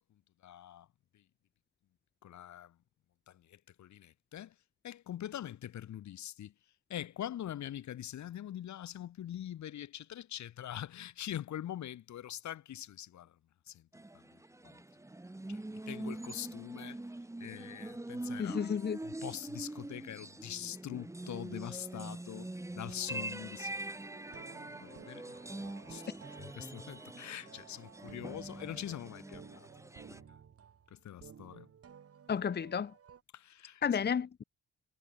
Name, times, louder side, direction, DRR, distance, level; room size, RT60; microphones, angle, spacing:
voice 1, 0.4-0.9 2.2-2.7 3.3-4.5 4.8-6.5 6.9-13.3 13.7-13.8 14.7-14.8 15.5-15.6 15.9-17.0 17.4-18.6 19.0-22.5 22.7-23.8 24.8-25.2 25.9-26.0 26.4-29.7 30.9-31.7 33.3-33.8, left 11 dB, 70° left, 2.3 m, -43 dB
sound 1, 13.9-30.2, right 2 dB, 10° right, 2.0 m, -44 dB
voice 2, 18.4-19.0 32.3-32.9 33.8-34.4, left 7 dB, 35° left, 0.9 m, -32 dB
sound 2, 22.8-33.2, right 8 dB, 50° right, 3.6 m, -55 dB
cardioid pair, 90°, 30 cm